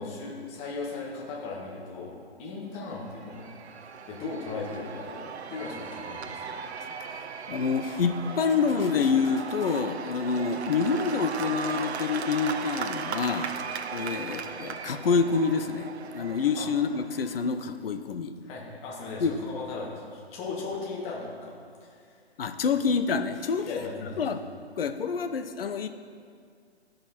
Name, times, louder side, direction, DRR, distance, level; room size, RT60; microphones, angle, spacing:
voice 1, 0.0-3.5 4.1-6.6 16.6-16.7 18.4-22.1 23.6-24.2, left 3 dB, 20° left, -3 dB, 1.5 m, -37 dB
Cheering / Applause / Crowd, 2.9-17.6, right 6 dB, 75° right, 0.6 m, -37 dB
voice 2, 7.5-13.5 13.9-18.4 19.2-19.3 22.4-23.9 24.2-24.4 24.8-25.9, left 5 dB, 60° left, 9 dB, 0.7 m, -27 dB
14.5 x 5.2 x 4.3 m, 2.2 s
hypercardioid pair, 145°, 33 cm